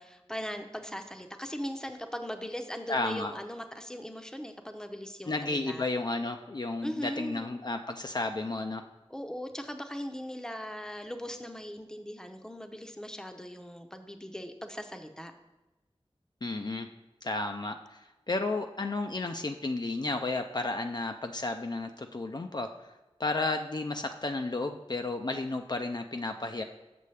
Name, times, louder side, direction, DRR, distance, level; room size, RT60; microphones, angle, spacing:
voice 1, 0.0-5.8 6.8-7.5 9.1-15.3, equal, 5° left, 7 dB, 0.6 m, -39 dB
voice 2, 2.9-3.3 5.3-8.8 16.4-16.9 17.2-18.0 18.3-22.7 23.2-26.6, left 2 dB, 45° left, 5 dB, 0.4 m, -32 dB
6.9 x 6.5 x 3.2 m, 1.1 s
wide cardioid pair, 45°, 10 cm